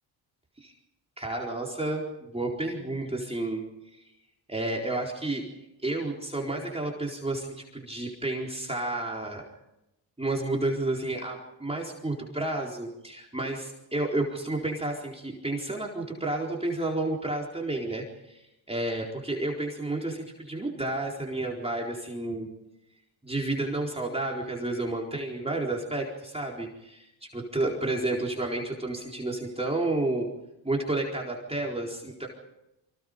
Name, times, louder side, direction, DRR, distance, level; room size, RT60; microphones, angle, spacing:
voice 1, 1.2-4.1 4.5-5.5 5.8-9.4 10.2-22.5 23.2-30.3 30.6-32.3, right 2 dB, 15° right, -1 dB, 4.2 m, -31 dB
28.5 x 25.0 x 5.2 m, 0.91 s
cardioid pair, 100°, 46 cm